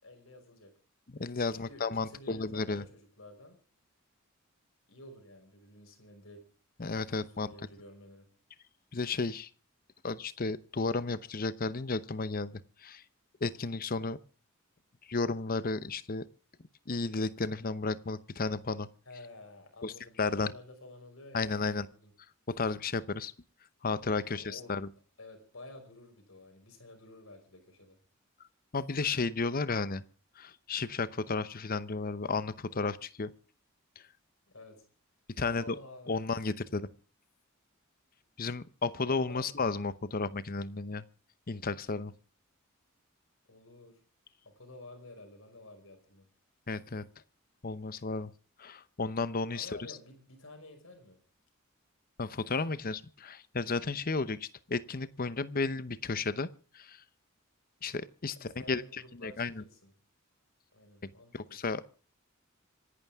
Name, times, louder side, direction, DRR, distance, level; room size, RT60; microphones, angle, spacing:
voice 1, 0.0-0.7 1.4-3.6 4.9-6.4 7.1-8.3 19.1-21.5 21.7-22.1 24.1-24.7 25.2-28.0 34.5-34.9 35.4-36.2 39.1-39.5 43.5-44.0 44.4-46.3 49.5-51.2 58.4-59.9 60.7-61.6, left 2 dB, 70° left, 5 dB, 5.5 m, -51 dB
voice 2, 1.1-2.8 6.8-7.5 8.9-9.5 10.0-13.0 13.4-14.2 15.0-16.2 16.9-18.9 19.8-19.9 20.2-20.5 21.3-21.9 22.6-23.3 23.8-24.9 28.4-28.5 28.7-30.0 30.3-33.3 34.0-34.1 35.4-35.8 36.1-36.9 38.4-41.0 41.5-42.1 46.7-47.1 47.6-48.3 48.6-50.0 52.2-56.5 56.7-57.0 57.8-59.6 61.3-61.9, left 3 dB, 45° left, 15 dB, 0.8 m, -33 dB
26.0 x 11.5 x 3.6 m, 0.40 s
head